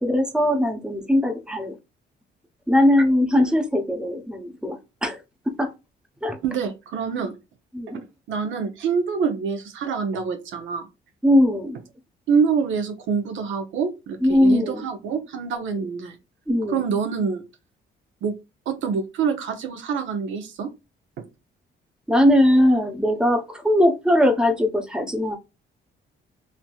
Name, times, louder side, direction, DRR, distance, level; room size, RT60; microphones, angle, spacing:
voice 1, 0.0-1.8 2.7-4.8 5.0-5.2 5.6-5.7 6.2-6.4 7.7-8.0 11.2-11.8 14.2-14.9 15.7-15.8 16.5-16.8 22.1-25.4, left 1 dB, 5° right, 0.7 m, -20 dB
voice 2, 6.4-7.3 7.9-10.9 12.3-16.2 16.7-17.5 18.2-18.3 18.7-20.7 21.2-21.3, right 6 dB, 75° right, 0.8 m, -26 dB
3.2 x 2.8 x 2.3 m
cardioid pair, 90°, 20 cm